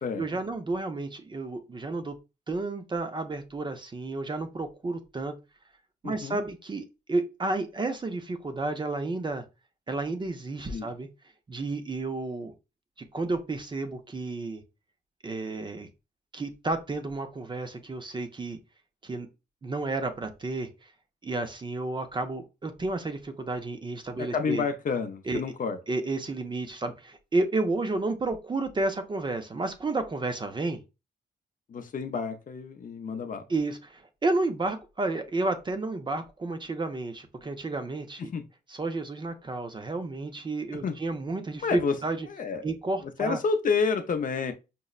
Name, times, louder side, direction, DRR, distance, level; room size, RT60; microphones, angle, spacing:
voice 1, 0.2-2.2 2.5-5.4 6.0-9.4 9.9-11.1 11.5-12.5 13.0-14.6 15.2-15.9 16.3-18.6 19.0-19.3 19.6-20.9 21.2-24.6 25.3-25.4 25.9-30.8 33.5-38.3 38.7-42.3 42.6-43.4, right 2 dB, 25° right, 0.4 m, -31 dB
voice 2, 6.0-6.4 10.7-10.9 24.2-25.8 31.7-33.4 38.2-38.4 40.7-41.0 41.6-42.0 42.3-42.7 43.0-44.5, left 5 dB, 50° left, 0.5 m, -29 dB
5.2 x 2.0 x 2.3 m
wide cardioid pair, 125°, 18 cm